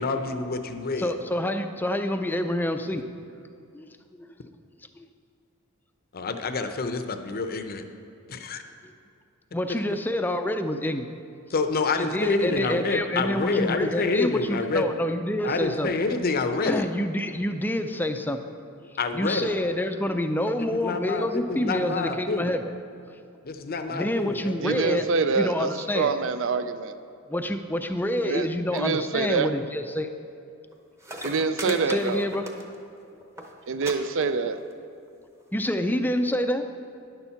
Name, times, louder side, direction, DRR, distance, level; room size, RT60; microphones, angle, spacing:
voice 1, 0.0-1.2 6.1-7.8 8.3-8.6 9.7-9.8 11.5-14.9 15.4-16.8 19.0-19.6 20.6-22.6 23.4-24.5, left 3 dB, 45° left, 8 dB, 0.6 m, -27 dB
voice 2, 1.0-3.1 3.7-4.3 5.0-5.1 8.8-8.9 9.5-11.1 12.0-15.9 16.7-18.6 19.1-22.7 23.1-23.2 23.9-25.1 25.3-26.2 27.3-30.1 31.6-32.5 35.5-36.6, left 1 dB, 10° left, 7 dB, 0.4 m, -27 dB
voice 3, 24.6-25.7 25.9-26.9 28.2-28.5 28.7-29.5 31.2-32.2 33.7-34.6, right 4 dB, 65° right, 11 dB, 0.5 m, -25 dB
sound 1, 30.7-30.8 31.0-32.9 33.2-33.5 33.8-33.9 34.2-34.7 35.5-35.6, right 1 dB, 15° right, 0.9 m, -37 dB
10.5 x 7.0 x 5.8 m, 2.5 s
head